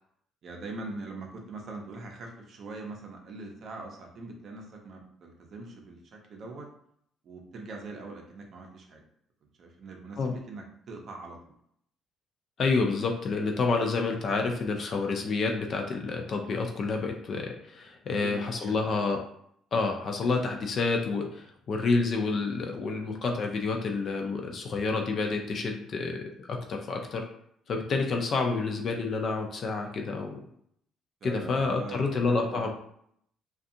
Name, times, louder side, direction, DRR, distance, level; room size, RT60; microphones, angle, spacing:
voice 1, 0.4-6.7 7.2-9.0 9.6-11.5 18.1-19.1 31.2-32.7, right 3 dB, 45° right, 1 dB, 0.6 m, -42 dB
voice 2, 12.6-19.2 19.7-27.2 27.7-30.4 31.2-32.7, left 4 dB, 45° left, 3 dB, 0.4 m, -29 dB
2.6 x 2.3 x 2.6 m, 0.69 s
cardioid pair, 145°, 0 cm